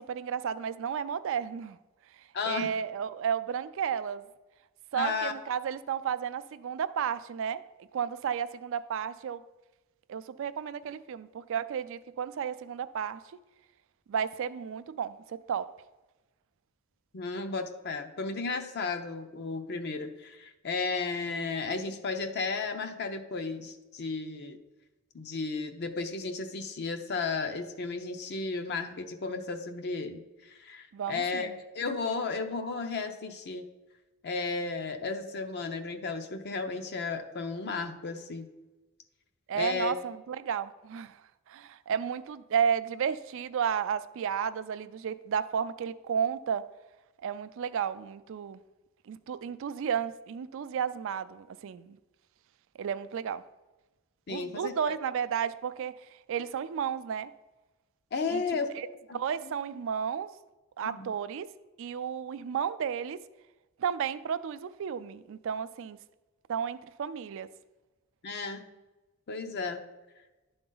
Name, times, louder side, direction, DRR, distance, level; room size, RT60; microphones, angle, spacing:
voice 1, 0.0-1.8 2.4-4.2 4.9-7.6 7.9-9.4 10.1-13.2 14.1-15.7 30.9-31.5 39.5-41.2 41.5-46.6 47.2-48.6 49.1-52.0 52.8-53.4 54.3-55.9 56.3-57.3 58.3-58.4 58.7-58.9 59.1-60.3 60.8-61.5 61.8-63.2 63.8-66.0 66.5-67.5, right 7 dB, 65° right, 0.3 m, -32 dB
voice 2, 2.3-2.8 4.9-5.3 17.1-24.6 25.1-33.7 34.2-38.5 39.5-39.9 54.3-54.7 58.1-58.7 59.1-59.2 60.8-61.1 68.2-68.7 69.3-69.8, left 4 dB, 55° left, 0.6 m, -34 dB
11.0 x 3.9 x 3.9 m
head